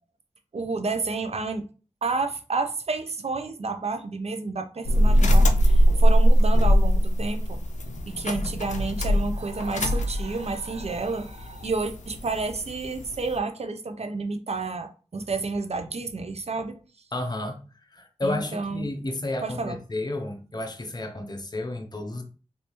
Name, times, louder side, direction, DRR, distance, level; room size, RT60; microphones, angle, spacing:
voice 1, 0.5-1.6 2.0-7.6 8.1-16.7 18.2-18.8 19.4-19.8, right 3 dB, 60° right, 0.6 m, -30 dB
sound 1, 4.9-13.4, equal, 80° left, 0.4 m, -21 dB
voice 2, 17.1-17.6 17.9-22.2, left 2 dB, 35° left, 0.7 m, -31 dB
3.4 x 2.7 x 2.9 m
wide cardioid pair, 50°, 12 cm